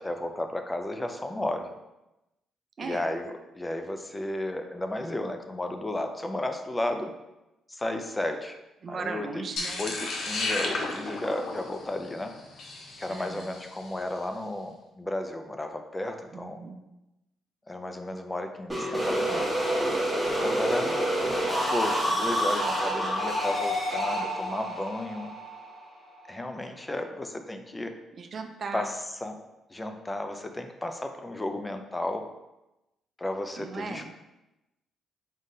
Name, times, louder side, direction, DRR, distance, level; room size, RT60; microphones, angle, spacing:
voice 1, 0.0-1.7 2.8-7.1 7.7-8.6 8.9-9.3 9.8-12.3 13.0-16.6 17.7-19.5 20.4-20.9 21.7-25.3 26.3-27.9 28.7-28.9 29.2-29.4 29.7-32.2 33.2-34.1, left 1 dB, 15° left, 6 dB, 0.4 m, -33 dB
voice 2, 2.8-3.1 8.8-9.8 13.1-13.6 16.3-16.8 28.2-28.9 33.6-34.1, right 4 dB, 50° right, 6 dB, 0.4 m, -37 dB
sound 1, 9.6-13.9, left 2 dB, 65° left, 0.7 m, -33 dB
sound 2, 18.7-26.4, equal, 5° right, 1.1 m, -28 dB
3.9 x 3.6 x 2.6 m, 0.96 s
cardioid pair, 90°, 0 cm